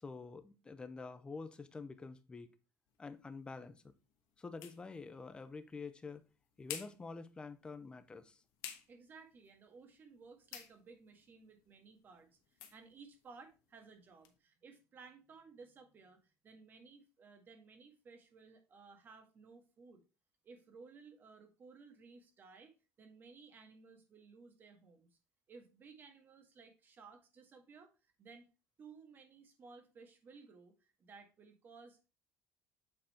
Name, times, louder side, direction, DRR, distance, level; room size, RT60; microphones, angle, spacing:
voice 1, 0.0-2.5 3.0-3.9 4.4-6.2 6.6-8.4, left 4 dB, 15° left, 0.8 m, -47 dB
sound 1, 2.9-14.4, left 10 dB, 85° left, 1.2 m, -55 dB
voice 2, 8.9-20.0 20.4-25.1 25.5-28.5 28.8-32.1, right 4 dB, 35° right, 1.8 m, -58 dB
7.7 x 4.2 x 4.4 m
cardioid pair, 140°, 6 cm